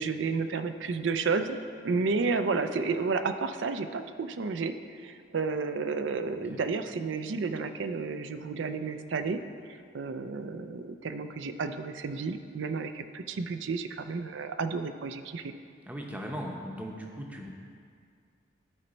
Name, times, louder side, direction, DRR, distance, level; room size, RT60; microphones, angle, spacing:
voice 1, 0.0-1.6 1.8-4.7 5.0-9.4 9.9-15.5, right 4 dB, 85° right, 9 dB, 0.5 m, -31 dB
voice 2, 15.9-17.5, equal, 10° right, 0 dB, 0.7 m, -38 dB
13.5 x 4.5 x 4.0 m, 2.3 s
head